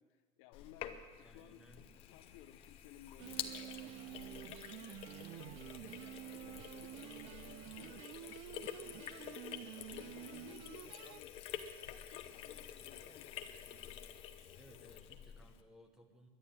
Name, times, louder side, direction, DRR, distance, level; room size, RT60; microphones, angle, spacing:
voice 1, 0.0-5.0 5.3-8.4 8.7-11.6 11.8-13.7, left 12 dB, 60° left, 9 dB, 0.9 m, -60 dB
Sink (filling or washing), 0.5-15.6, left 10 dB, 35° left, 0.8 m, -49 dB
voice 2, 1.2-1.9 13.0-13.6 14.5-16.3, equal, 5° right, 4 dB, 1.1 m, -62 dB
sound 1, 3.2-11.2, right 14 dB, 35° right, 0.4 m, -50 dB
11.5 x 11.0 x 8.8 m, 1.4 s
cardioid pair, 175°, 17 cm